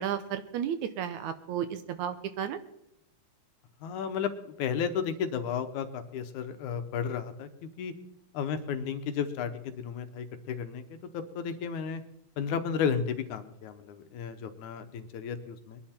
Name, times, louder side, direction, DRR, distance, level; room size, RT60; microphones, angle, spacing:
voice 1, 0.0-2.6, right 9 dB, 70° right, 11 dB, 2.1 m, -33 dB
voice 2, 3.8-7.9 8.3-10.8 11.1-12.0 12.4-15.8, left 7 dB, 75° left, 9 dB, 2.2 m, -33 dB
22.5 x 11.0 x 4.4 m, 0.79 s
omnidirectional pair, 3.7 m